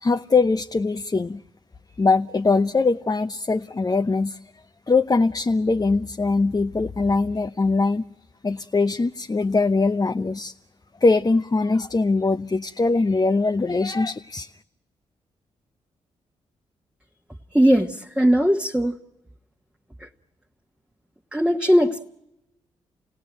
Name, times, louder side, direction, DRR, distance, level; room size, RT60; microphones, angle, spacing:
voice 1, 0.0-1.4 2.0-4.4 4.9-8.0 8.4-10.5 11.0-14.5, left 3 dB, 30° left, 0.8 m, -22 dB
voice 2, 17.5-19.0 20.0-20.1 21.3-22.0, equal, 5° right, 1.5 m, -19 dB
28.5 x 18.0 x 9.1 m
hypercardioid pair, 40°, 14 cm